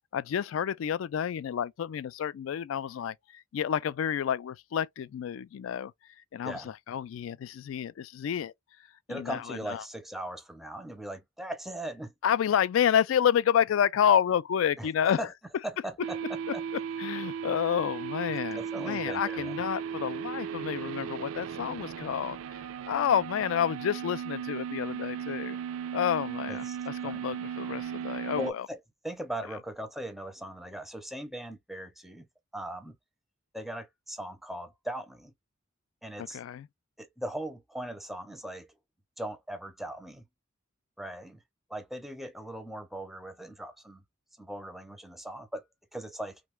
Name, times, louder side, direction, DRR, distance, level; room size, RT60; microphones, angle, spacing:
voice 1, 0.1-5.9 6.3-8.5 9.1-9.8 12.2-15.3 17.0-22.4 22.9-25.6 25.9-28.7 36.2-36.7, left 9 dB, 75° left, 0.3 m, -29 dB
voice 2, 9.1-12.1 14.8-15.3 15.6-16.2 16.5-16.6 18.3-19.6 26.5-26.8 27.0-27.2 28.4-28.8 29.0-32.3 32.5-33.0 33.5-35.3 36.0-36.4 37.0-38.7 39.2-40.2 41.0-41.4 41.7-44.0 44.4-45.6 45.9-46.4, right 1 dB, ahead, 0.5 m, -39 dB
sound 1, 16.0-28.5, right 8 dB, 85° right, 0.3 m, -36 dB
3.0 x 2.2 x 3.2 m
head